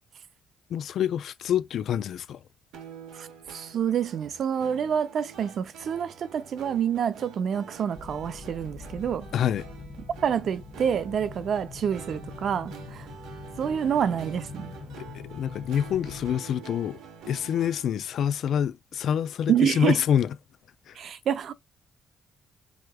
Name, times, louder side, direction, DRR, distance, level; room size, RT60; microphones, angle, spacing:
voice 1, 0.7-2.4 9.3-9.7 15.0-17.0 17.3-20.4 20.9-21.0, left 9 dB, 70° left, 0.3 m, -27 dB
sound 1, 2.7-18.0, right 6 dB, 85° right, 1.0 m, -47 dB
voice 2, 3.1-9.3 10.2-13.1 13.6-14.7 19.5-20.0 21.0-21.5, right 8 dB, 65° right, 0.5 m, -27 dB
sound 2, 7.9-16.4, left 5 dB, 40° left, 0.6 m, -43 dB
4.9 x 3.2 x 2.2 m
supercardioid pair, 70°, 0 cm